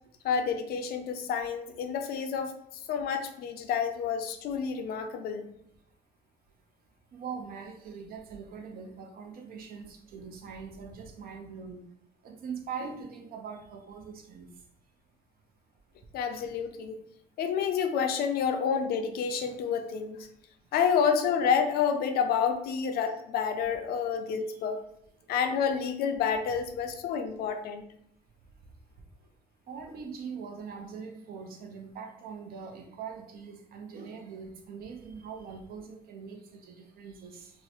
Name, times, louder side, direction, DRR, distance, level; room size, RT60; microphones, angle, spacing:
voice 1, 0.2-2.5 2.9-5.4 16.1-17.0 17.4-20.3 20.7-24.8 25.3-27.8, left 7 dB, 65° left, 7 dB, 0.5 m, -29 dB
voice 2, 7.1-11.8 12.2-14.5 20.8-20.9 29.7-37.5, right 6 dB, 60° right, 3 dB, 0.7 m, -42 dB
3.6 x 2.1 x 3.0 m, 0.74 s
cardioid pair, 110°, 17 cm